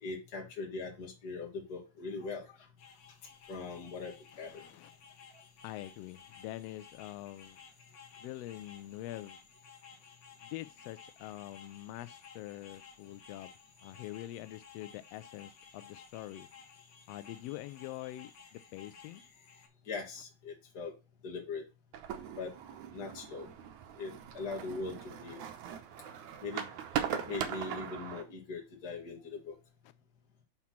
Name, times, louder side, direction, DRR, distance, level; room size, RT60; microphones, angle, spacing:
voice 1, 0.0-2.5 3.5-4.6 5.3-5.4 19.9-20.9 21.2-21.6 22.4-22.5 22.9-23.5 24.0-25.4 26.4-26.6 27.1-29.5, left 4 dB, 35° left, 2.4 m, -41 dB
sound 1, 2.8-19.7, left 6 dB, 60° left, 1.2 m, -56 dB
voice 2, 4.3-4.9 5.6-7.6 8.2-9.4 10.4-16.5 17.1-19.2, left 15 dB, 85° left, 1.4 m, -45 dB
sound 2, 21.9-28.2, right 9 dB, 75° right, 2.3 m, -40 dB
5.9 x 4.4 x 5.9 m
omnidirectional pair, 3.4 m